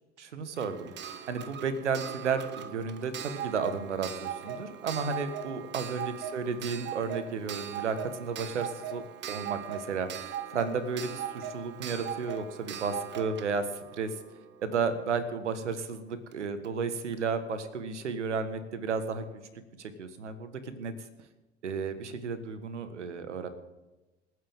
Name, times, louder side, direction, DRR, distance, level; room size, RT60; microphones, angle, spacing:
voice 1, 0.2-0.9 1.3-13.6 13.9-14.1 14.6-19.3 19.8-20.9 21.6-23.5, right 5 dB, 75° right, 11 dB, 1.6 m, -33 dB
Clock, 0.6-15.1 16.3-16.4 16.6-16.7, right 8 dB, 30° right, 1.2 m, -40 dB
27.5 x 9.4 x 3.7 m, 1.1 s
figure-of-eight pair, 80°, 35 cm